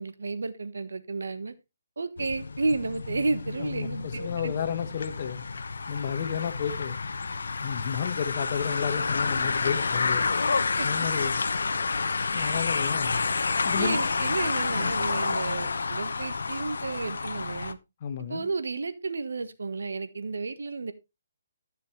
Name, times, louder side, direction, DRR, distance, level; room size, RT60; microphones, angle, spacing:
voice 1, 0.0-1.5 2.0-4.5 10.8-10.9 12.4-12.6 13.8-17.8 18.3-20.9, right 3 dB, 85° right, 1.4 m, -32 dB
sound 1, 2.2-17.7, left 4 dB, 80° left, 0.9 m, -29 dB
voice 2, 3.6-5.4 5.9-7.0 7.6-11.4 12.3-13.2 13.6-14.0 18.0-18.5, left 7 dB, 40° left, 1.3 m, -32 dB
13.5 x 6.7 x 3.2 m
hypercardioid pair, 165°, 0 cm